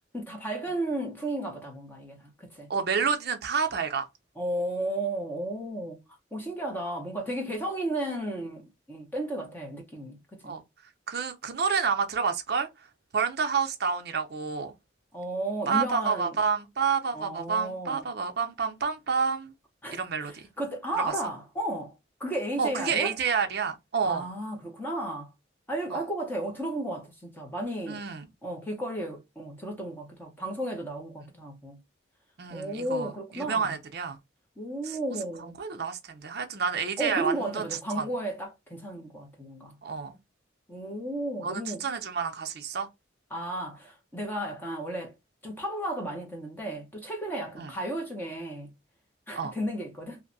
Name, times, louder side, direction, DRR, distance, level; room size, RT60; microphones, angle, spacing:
voice 1, 0.1-2.7 4.4-6.0 6.3-10.5 15.1-16.4 17.1-18.1 19.8-23.2 24.0-25.3 25.7-28.0 28.4-31.8 32.5-33.8 34.6-35.6 37.0-39.8 40.7-41.9 43.3-45.1 45.4-48.7 49.3-50.2, right 1 dB, 10° left, 0.7 m, -34 dB
voice 2, 2.7-4.1 10.4-10.6 11.1-12.7 13.1-14.7 15.7-19.5 19.9-20.5 22.6-24.3 25.9-26.1 27.9-28.2 32.4-34.2 35.4-37.7 38.0-38.1 39.8-40.2 41.4-42.9 47.6-47.7 49.4-49.5, right 5 dB, 50° right, 0.5 m, -29 dB
2.6 x 2.1 x 2.5 m
head